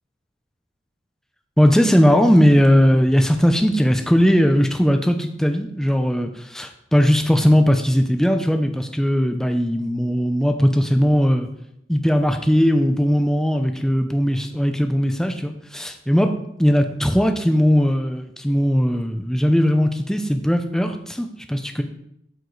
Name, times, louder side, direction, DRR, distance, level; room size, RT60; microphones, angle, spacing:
voice 1, 1.6-11.5 11.9-16.3 16.6-21.8, equal, 5° left, 6 dB, 0.6 m, -18 dB
12.5 x 4.8 x 4.0 m, 0.77 s
head